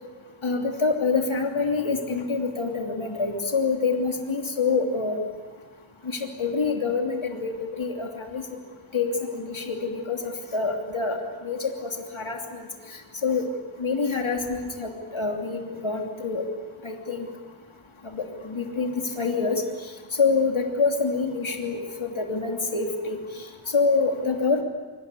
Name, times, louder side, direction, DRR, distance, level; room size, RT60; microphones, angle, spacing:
voice 1, 0.4-5.2 6.2-8.4 8.9-11.2 11.4-12.7 13.2-13.4 13.8-16.4 16.8-17.3 18.1-19.6 20.2-23.2 23.7-24.6, left 4 dB, 70° left, 2 dB, 3.0 m, -26 dB
25.0 x 22.5 x 8.4 m, 1.4 s
wide cardioid pair, 60°, 49 cm